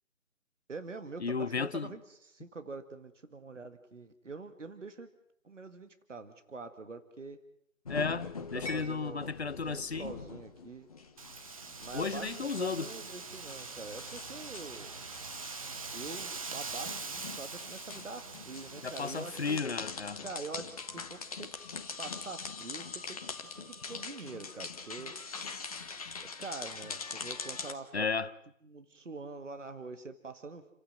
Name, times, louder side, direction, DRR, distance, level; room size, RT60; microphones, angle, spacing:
voice 1, 0.7-5.1 5.4-7.4 8.5-10.9 11.8-14.9 15.9-19.6 20.2-21.5 22.0-23.3 23.7-25.2 26.4-28.1 28.6-30.7, right 3 dB, 60° right, 2.0 m, -45 dB
voice 2, 1.2-1.9 7.9-10.1 11.9-12.9 18.8-20.2 27.9-28.3, left 5 dB, 50° left, 1.1 m, -34 dB
sound 1, 7.8-27.7, left 4 dB, 25° left, 1.5 m, -43 dB
Wind, 11.2-19.6, right 4 dB, 25° right, 1.2 m, -43 dB
30.0 x 15.5 x 9.0 m
figure-of-eight pair, 155°, 40 cm